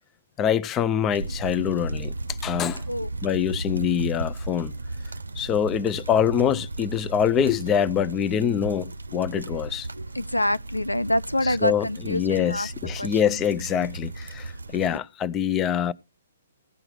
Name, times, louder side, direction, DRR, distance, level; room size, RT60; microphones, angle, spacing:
voice 1, 0.4-2.1 2.4-2.8 3.2-4.7 5.4-9.8 11.4-15.9, left 8 dB, 20° left, 0.5 m, -25 dB
sound 1, 1.1-15.0, right 2 dB, 75° right, 0.6 m, -35 dB
voice 2, 9.9-12.7 13.0-13.4, left 1 dB, 85° left, 0.5 m, -27 dB
16.0 x 6.0 x 4.8 m
figure-of-eight pair, 125°, 0 cm